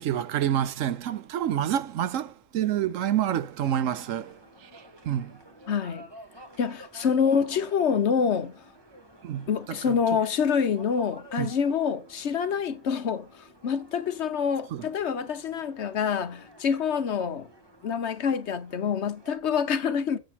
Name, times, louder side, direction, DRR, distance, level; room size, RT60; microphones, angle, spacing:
voice 1, 0.0-5.4 9.2-10.0 11.4-11.5 14.7-14.8, right 10 dB, 90° right, 1.1 m, -28 dB
sound 1, 3.6-19.4, equal, 20° right, 1.3 m, -51 dB
voice 2, 5.7-6.1 6.6-8.6 9.5-17.5 17.8-20.2, left 7 dB, 60° left, 1.1 m, -26 dB
7.9 x 7.5 x 4.2 m
omnidirectional pair, 1.3 m